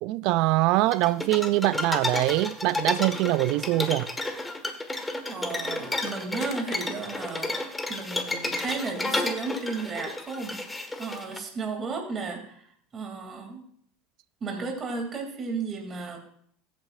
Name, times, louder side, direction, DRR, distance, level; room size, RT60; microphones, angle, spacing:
voice 1, 0.0-4.1, right 18 dB, 65° right, 0.3 m, -23 dB
sound 1, 0.9-11.4, left 2 dB, 10° left, 1.4 m, -31 dB
voice 2, 5.3-13.6 14.4-16.2, right 4 dB, 35° right, 2.6 m, -34 dB
sound 2, 5.8-7.8 8.0-8.3 8.6-8.8 9.0-9.5 10.4-10.5, left 8 dB, 45° left, 0.9 m, -44 dB
15.0 x 8.6 x 2.5 m
hypercardioid pair, 90°, 0 cm